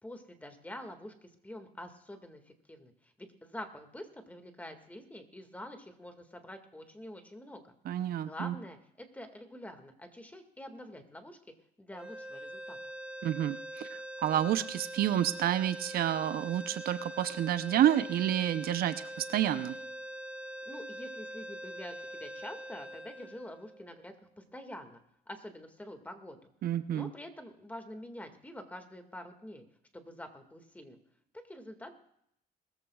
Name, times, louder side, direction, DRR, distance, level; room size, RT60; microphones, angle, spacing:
voice 1, 0.0-7.6 8.0-11.4 11.8-12.8 20.7-25.0 25.3-26.5 26.9-29.6 29.9-31.0 31.3-31.9, left 1 dB, 10° left, 6 dB, 1.9 m, -46 dB
voice 2, 7.9-8.5 13.2-19.8 26.6-27.1, right 11 dB, 60° right, 11 dB, 0.7 m, -29 dB
sound 1, 11.9-24.2, right 1 dB, 5° right, 1.1 m, -43 dB
21.0 x 14.5 x 2.4 m, 0.73 s
cardioid pair, 110°, 17 cm